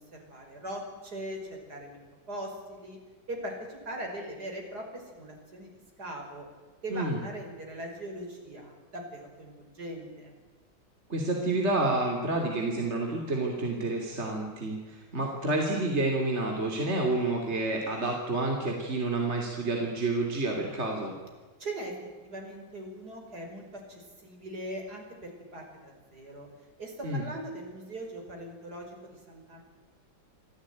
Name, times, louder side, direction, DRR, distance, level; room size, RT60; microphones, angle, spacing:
voice 1, 0.0-2.0 2.3-3.0 3.3-5.7 6.0-6.5 6.8-10.3 21.6-22.0 22.2-26.5 26.8-29.6, right 1 dB, 50° right, 2 dB, 5.9 m, -40 dB
voice 2, 11.1-21.2 27.0-27.2, right 2 dB, 35° right, 1 dB, 3.4 m, -29 dB
25.5 x 16.0 x 9.3 m, 1.4 s
omnidirectional pair, 2.2 m